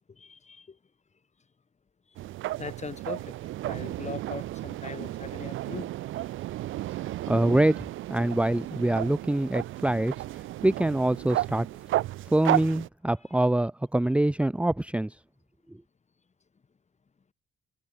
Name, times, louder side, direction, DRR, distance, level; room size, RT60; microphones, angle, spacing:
voice 1, 0.2-0.8 2.6-5.9, left 5 dB, 35° left, 6.5 m, -40 dB
sound 1, 2.2-12.9, right 15 dB, 80° right, 0.9 m, -33 dB
voice 2, 7.3-11.7 12.3-15.2, right 1 dB, 5° right, 0.8 m, -25 dB
cardioid pair, 90°, 20 cm